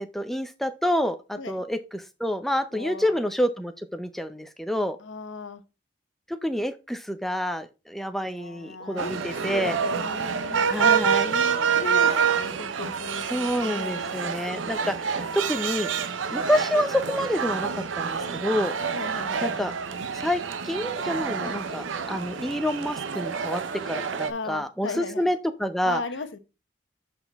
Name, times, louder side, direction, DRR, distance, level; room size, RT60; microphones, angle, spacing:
voice 1, 0.0-5.0 6.4-9.8 10.7-11.3 13.3-15.9 16.3-18.7 19.4-19.7 20.1-26.0, equal, ahead, 0.5 m, -28 dB
voice 2, 2.7-3.2 5.0-5.6 8.2-14.3 18.9-19.4 21.4-21.6 24.3-25.3 25.8-26.4, left 3 dB, 85° left, 0.9 m, -37 dB
sound 1, 9.0-24.3, right 7 dB, 85° right, 0.6 m, -27 dB
7.7 x 4.4 x 3.4 m
head